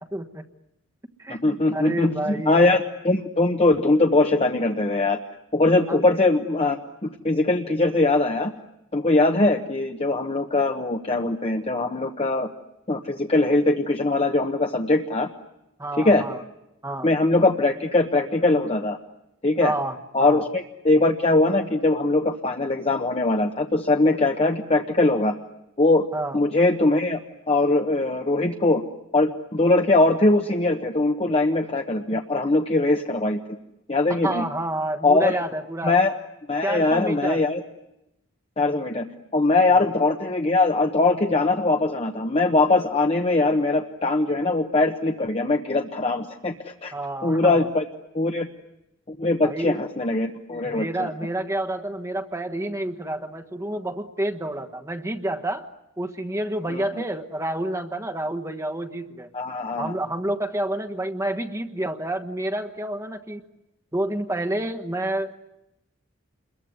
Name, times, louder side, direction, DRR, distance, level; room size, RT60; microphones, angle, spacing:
voice 1, 0.1-0.4 1.2-2.7 5.9-6.0 15.8-16.4 16.8-17.1 19.6-20.4 26.1-26.4 34.2-35.9 36.6-37.4 39.7-39.9 46.9-47.7 49.4-49.8 50.6-55.7 56.0-59.3 59.8-63.4 63.9-65.4, right 1 dB, 15° right, 5 dB, 1.3 m, -29 dB
voice 2, 1.3-5.2 5.5-6.8 7.0-8.5 8.9-12.5 12.9-15.3 16.0-16.2 17.0-19.0 19.4-19.7 20.1-25.4 25.8-26.1 26.3-27.2 27.5-28.8 29.1-33.6 33.9-34.4 35.0-35.4 35.8-36.1 36.5-37.6 38.6-39.1 39.3-46.9 47.2-47.8 48.1-48.5 49.1-51.1 56.7-56.8 59.3-59.9, left 2 dB, 30° left, 5 dB, 1.1 m, -21 dB
28.5 x 22.0 x 9.5 m, 0.91 s
head